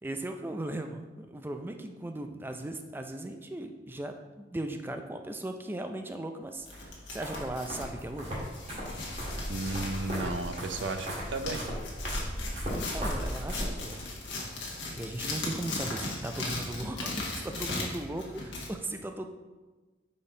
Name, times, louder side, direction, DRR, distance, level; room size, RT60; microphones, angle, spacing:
voice 1, 0.0-8.3 12.7-14.0 15.0-19.3, right 1 dB, 10° right, 5 dB, 0.4 m, -37 dB
sound 1, 6.6-18.7, left 2 dB, 80° left, 1.3 m, -38 dB
sound 2, 6.7-14.0, equal, 35° right, 1.8 m, -37 dB
voice 2, 9.5-11.7, right 2 dB, 80° right, 7 dB, 0.6 m, -34 dB
5.3 x 4.3 x 4.9 m, 1.2 s
head